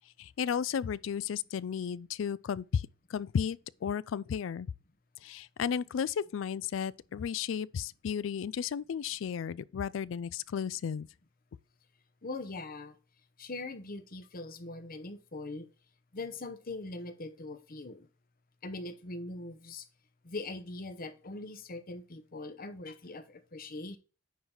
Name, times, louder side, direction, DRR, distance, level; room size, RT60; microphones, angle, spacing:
voice 1, 0.2-4.7 5.2-11.1, left 7 dB, 70° left, 0.3 m, -34 dB
voice 2, 12.2-12.9 13.4-15.7 16.1-18.1 18.6-19.9 20.2-24.0, left 2 dB, 45° left, 0.9 m, -41 dB
9.4 x 4.0 x 4.4 m
head